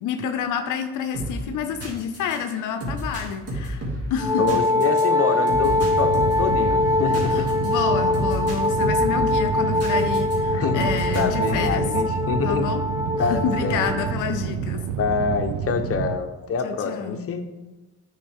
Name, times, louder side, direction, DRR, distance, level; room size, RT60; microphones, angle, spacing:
voice 1, 0.0-4.6 7.2-11.9 12.4-12.8 13.2-14.8 16.6-17.2, left 7 dB, 85° left, 7 dB, 0.6 m, -29 dB
sound 1, 1.1-10.4 10.8-11.9, equal, 55° right, 2.4 m, -32 dB
Wind instrument woodwind instrument, 4.2-14.2, left 2 dB, 10° right, 0.6 m, -23 dB
voice 2, 4.4-7.5 10.5-12.7 13.2-14.2 15.0-17.4, left 6 dB, 50° left, 5 dB, 0.9 m, -26 dB
sound 2, 5.6-16.2, right 8 dB, 85° right, 0.5 m, -29 dB
10.0 x 4.8 x 3.6 m, 1.1 s
cardioid pair, 90°, 30 cm